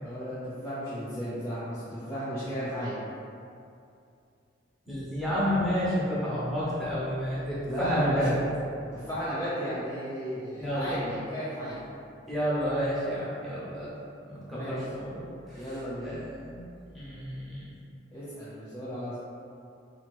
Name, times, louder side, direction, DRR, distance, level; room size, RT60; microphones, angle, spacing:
voice 1, 0.0-2.9 7.7-8.4 8.9-11.8 14.5-14.8 15.6-16.2 18.1-19.2, equal, 15° left, -12 dB, 0.6 m, -34 dB
voice 2, 4.9-8.3 10.6-10.9 12.3-13.9 14.2-15.2 15.5-15.8 16.0-16.2 16.5-16.6 16.9-17.7, equal, ahead, -11 dB, 1.0 m, -30 dB
2.9 x 2.8 x 4.4 m, 2.5 s
head